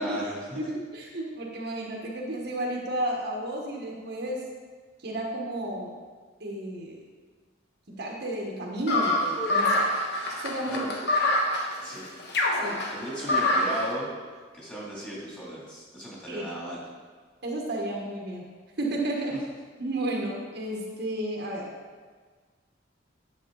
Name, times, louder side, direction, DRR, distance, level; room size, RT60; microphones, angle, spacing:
voice 1, 0.0-0.6 10.7-10.9 11.8-12.1 12.9-14.1 14.5-16.8 19.3-19.4, right 1 dB, 5° left, -6 dB, 2.8 m, -36 dB
voice 2, 0.5-4.4 5.0-6.0 6.4-7.0 7.9-9.9 10.3-10.8 12.5-12.8 16.3-16.4 17.4-18.5 18.8-19.4 19.8-21.7, right 1 dB, 60° right, -1 dB, 1.5 m, -32 dB
sound 1, 8.9-13.9, left 1 dB, 60° left, 1.3 m, -25 dB
10.0 x 7.6 x 4.0 m, 1.5 s
head